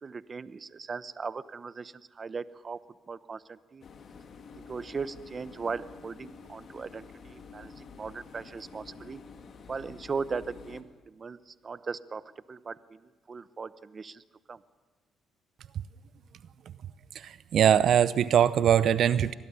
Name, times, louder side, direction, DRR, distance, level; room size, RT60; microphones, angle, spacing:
voice 1, 0.0-2.8 3.1-3.8 4.5-9.2 9.7-14.2 14.5-14.6, right 5 dB, 35° right, 16 dB, 0.8 m, -38 dB
sound 1, 3.8-10.8, left 5 dB, 55° left, 2.6 m, -49 dB
voice 2, 17.1-19.3, right 9 dB, 65° right, 16 dB, 0.7 m, -22 dB
25.0 x 18.0 x 9.7 m, 1.3 s
cardioid pair, 90°, 0 cm